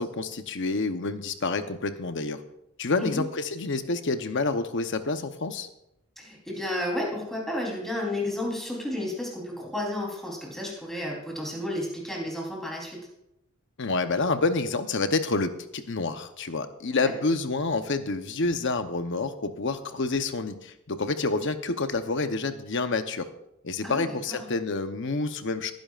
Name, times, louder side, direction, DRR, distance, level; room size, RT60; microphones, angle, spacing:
voice 1, 0.0-2.4 2.8-5.7 13.8-23.3 23.6-25.7, left 3 dB, 55° left, 9 dB, 0.8 m, -28 dB
voice 2, 6.2-13.0 16.9-17.1 23.8-24.4, left 1 dB, ahead, -3 dB, 3.5 m, -32 dB
20.5 x 10.5 x 2.5 m, 0.83 s
head